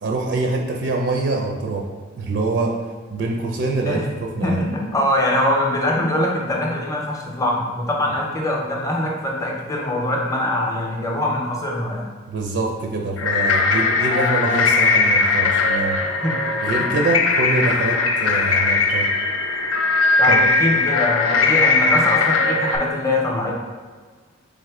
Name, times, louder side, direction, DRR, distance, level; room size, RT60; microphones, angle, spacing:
voice 1, 0.0-1.9 2.2-2.7 3.1-4.1 4.4-4.6 12.3-16.0 16.6-19.1 20.3-20.4, right 3 dB, 60° right, 1 dB, 0.4 m, -24 dB
voice 2, 4.4-12.1 16.0-16.4 20.2-23.5, left 1 dB, 15° left, -1 dB, 0.6 m, -23 dB
sound 1, 13.2-22.8, left 3 dB, 85° left, 0.5 m, -19 dB
3.6 x 3.5 x 3.4 m, 1.5 s
head